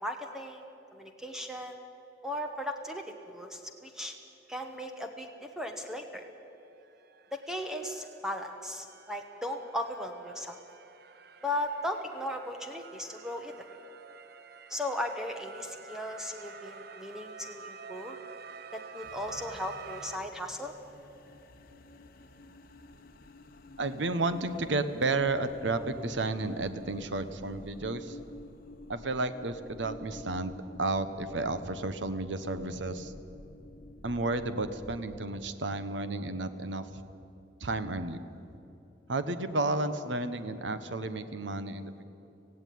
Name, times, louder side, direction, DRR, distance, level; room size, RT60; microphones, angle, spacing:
voice 1, 0.0-1.8 2.2-4.1 4.5-6.2 7.3-10.6 11.4-13.7 14.7-18.2 18.7-20.7, left 1 dB, 5° right, 4 dB, 1.1 m, -37 dB
sound 1, 5.7-5.8 6.1-20.2, right 6 dB, 60° right, 0.8 m, -49 dB
sound 2, 19.0-35.2, left 1 dB, 55° left, 1.1 m, -49 dB
voice 2, 23.8-28.2 28.9-33.1 34.0-36.9 37.6-38.2 39.1-42.0, right 2 dB, 80° right, 11 dB, 1.1 m, -32 dB
18.0 x 16.0 x 9.4 m, 2.8 s
head